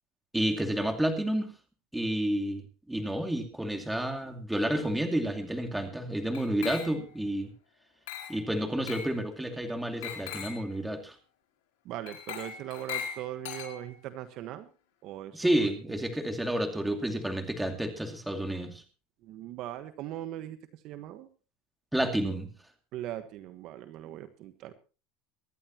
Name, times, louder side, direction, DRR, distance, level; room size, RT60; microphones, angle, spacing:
voice 1, 0.3-1.5 1.9-7.5 8.3-11.2 15.3-18.8 21.9-22.5, right 1 dB, 5° right, 4 dB, 2.4 m, -30 dB
Glass, 6.3-7.2 8.1-8.5 8.9-9.2 10.0-10.7 12.1-14.1, left 9 dB, 85° left, 5.2 m, -40 dB
voice 2, 11.8-14.7 15.0-15.5 15.9-16.0 19.2-20.6 20.8-21.3 22.9-24.7, right 13 dB, 50° right, 9 dB, 1.3 m, -40 dB
24.0 x 11.0 x 3.0 m, 0.35 s
supercardioid pair, 135°, 0 cm